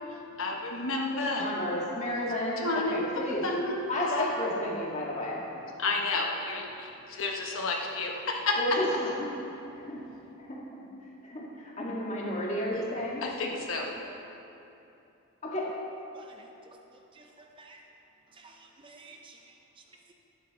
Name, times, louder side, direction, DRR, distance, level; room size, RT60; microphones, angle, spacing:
voice 1, 0.4-1.5 2.6-3.0 3.4-4.1 5.8-8.6 13.2-13.9, left 3 dB, 65° left, 0 dB, 1.1 m, -31 dB
voice 2, 1.1-3.4 3.9-5.4 8.6-9.3 9.7-10.0 10.4-10.6 11.2-13.2 15.4-15.7, left 1 dB, 30° left, -4 dB, 1.7 m, -32 dB
voice 3, 16.1-16.7 17.1-17.2 17.6-17.8 18.4-19.4, right 3 dB, 20° right, 2 dB, 0.5 m, -52 dB
11.0 x 10.0 x 4.1 m, 2.9 s
head